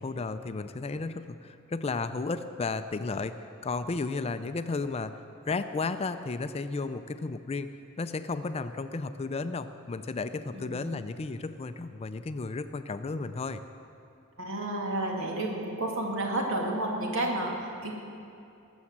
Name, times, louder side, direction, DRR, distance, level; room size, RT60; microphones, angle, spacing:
voice 1, 0.0-3.3 3.6-5.2 5.5-7.7 8.0-13.6, left 3 dB, 30° left, 10 dB, 0.4 m, -33 dB
voice 2, 10.5-11.0 14.4-17.9, right 1 dB, 65° right, 0 dB, 2.2 m, -31 dB
19.5 x 7.3 x 7.3 m, 2.7 s
head